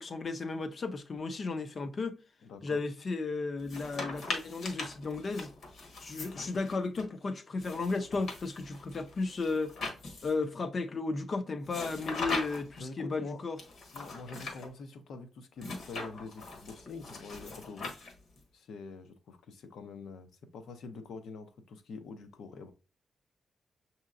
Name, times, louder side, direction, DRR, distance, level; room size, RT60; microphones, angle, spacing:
voice 1, 0.0-2.2 2.6-5.5 6.0-9.7 10.2-13.6, left 3 dB, 35° left, 0.4 m, -34 dB
voice 2, 2.4-2.8 6.4-6.5 12.8-13.4 13.9-18.0 18.5-22.7, left 4 dB, 90° left, 0.7 m, -46 dB
sound 1, 3.6-7.0 7.6-10.5 11.7-12.8 13.6-14.7 15.6-18.4, left 3 dB, 60° left, 1.2 m, -41 dB
6.5 x 2.8 x 2.4 m
wide cardioid pair, 180°, 0 cm